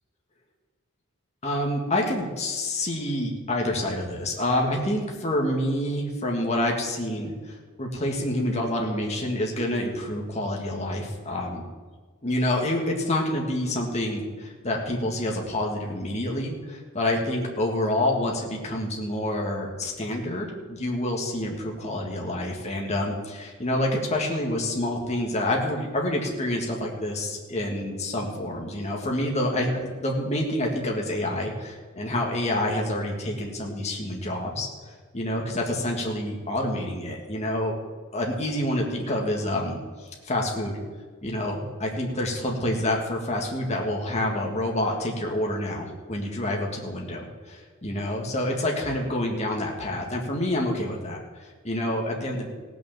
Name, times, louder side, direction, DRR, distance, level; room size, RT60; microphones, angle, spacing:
voice 1, 1.4-11.6 12.2-37.8 38.1-40.8 41.2-52.5, left 1 dB, 30° left, 0 dB, 1.8 m, -28 dB
17.0 x 6.2 x 7.3 m, 1.4 s
head